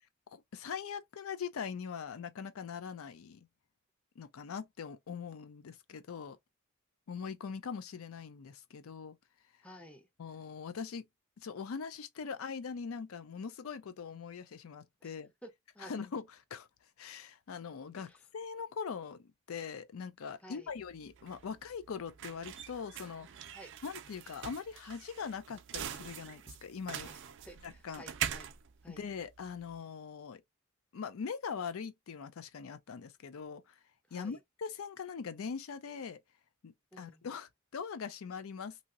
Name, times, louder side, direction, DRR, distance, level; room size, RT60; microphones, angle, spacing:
voice 1, 0.3-3.5 4.2-6.4 7.1-9.2 10.2-11.0 11.4-15.3 15.8-16.2 16.5-16.7 17.0-23.5 23.8-27.1 27.6-28.0 28.9-30.4 30.9-33.8 34.1-36.2 36.6-38.8, left 6 dB, 75° left, 0.4 m, -42 dB
voice 2, 9.6-10.1 15.0-15.2 15.4-15.9 18.0-18.3 20.4-20.7 23.5-23.7 26.9-28.5 28.8-29.0 34.1-34.4 36.9-37.3, right 1 dB, 5° left, 0.8 m, -53 dB
sound 1, 20.7-29.7, right 10 dB, 60° right, 0.4 m, -43 dB
2.8 x 2.8 x 2.4 m
head